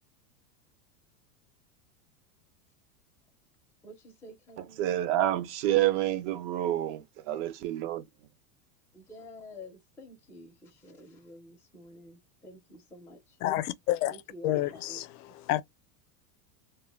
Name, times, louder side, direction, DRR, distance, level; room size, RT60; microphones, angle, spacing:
voice 1, 3.8-5.1 8.9-13.2 14.1-15.0, left 1 dB, 5° left, 0.4 m, -49 dB
voice 2, 4.8-8.0, right 13 dB, 50° right, 0.5 m, -28 dB
voice 3, 13.4-14.2 14.4-15.0 15.5-15.6, left 14 dB, 75° left, 0.5 m, -28 dB
2.2 x 2.1 x 3.2 m
supercardioid pair, 135°, 46 cm